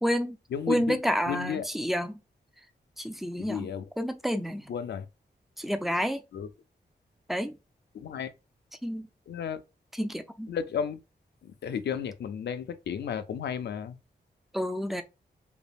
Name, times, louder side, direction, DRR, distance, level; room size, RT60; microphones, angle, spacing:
voice 1, 0.0-0.4 0.7-2.2 3.0-3.7 4.0-4.6 5.6-6.2 7.3-7.5 8.8-9.1 10.0-10.5 14.5-15.0, equal, ahead, 0.4 m, -29 dB
voice 2, 0.5-1.0 1.3-1.6 3.4-3.8 4.7-5.1 6.3-6.5 7.9-8.3 9.3-9.6 10.5-11.0 11.4-14.0, left 7 dB, 75° left, 0.4 m, -33 dB
3.3 x 2.0 x 2.3 m
wide cardioid pair, 85°, 18 cm